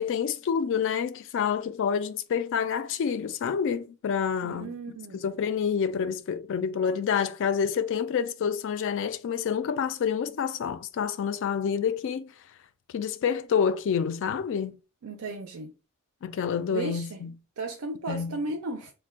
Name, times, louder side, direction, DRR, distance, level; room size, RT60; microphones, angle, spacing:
voice 1, 0.0-4.7 5.2-12.3 12.9-14.8 16.2-17.3 18.1-18.4, left 7 dB, 60° left, 0.3 m, -28 dB
voice 2, 4.4-5.2 15.0-15.7 16.7-17.2 17.6-18.9, right 2 dB, 80° right, 0.5 m, -35 dB
2.5 x 2.2 x 3.5 m
head